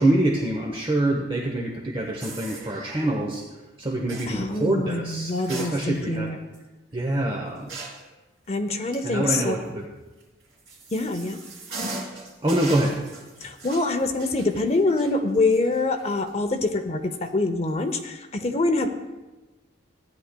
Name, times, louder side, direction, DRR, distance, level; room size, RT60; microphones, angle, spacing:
voice 1, 0.0-3.4 3.8-6.3 6.9-7.7 9.0-9.9 12.4-13.0, right 1 dB, 25° right, -1 dB, 0.8 m, -25 dB
sound 1, 2.2-3.1 4.1-4.4 5.3-6.2 6.5-6.6 7.7-8.1 10.2-16.3 16.7-16.8 17.7-18.0, right 2 dB, 55° right, 3.6 m, -39 dB
voice 2, 4.3-6.4 8.5-9.6 10.9-11.4 13.4-18.9, left 2 dB, 30° left, 7 dB, 0.6 m, -25 dB
15.5 x 10.0 x 2.2 m, 1.1 s
head